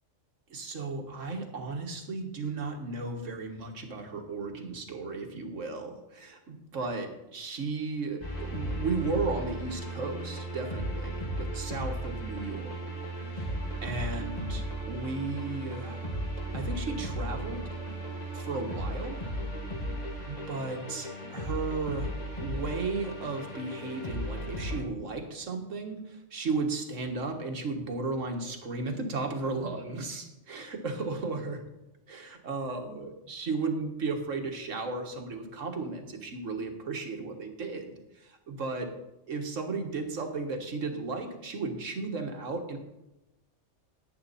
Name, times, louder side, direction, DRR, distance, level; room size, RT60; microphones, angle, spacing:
voice 1, 0.5-12.8 13.3-13.5 13.8-16.1 16.5-17.7 18.3-19.2 20.3-22.1 22.4-31.6 32.1-38.9 39.3-42.8, right 3 dB, 80° right, 4 dB, 1.8 m, -35 dB
sound 1, 8.2-24.8, right 1 dB, 35° left, 2.1 m, -35 dB
10.5 x 9.9 x 4.2 m, 0.93 s
omnidirectional pair, 1.3 m